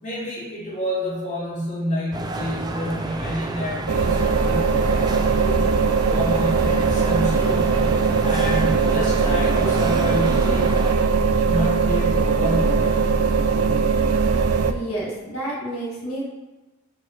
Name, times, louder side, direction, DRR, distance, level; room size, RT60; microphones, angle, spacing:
voice 1, 0.0-7.7 8.2-10.7 11.5-13.0, equal, 30° left, -7 dB, 2.6 m, -28 dB
sound 1, 2.1-11.0, right 2 dB, 20° right, 0.5 m, -30 dB
sound 2, 3.9-14.7, right 5 dB, 85° right, 0.6 m, -20 dB
voice 2, 14.7-16.3, right 1 dB, 70° left, -6 dB, 1.9 m, -30 dB
6.1 x 4.7 x 6.6 m, 1.1 s
head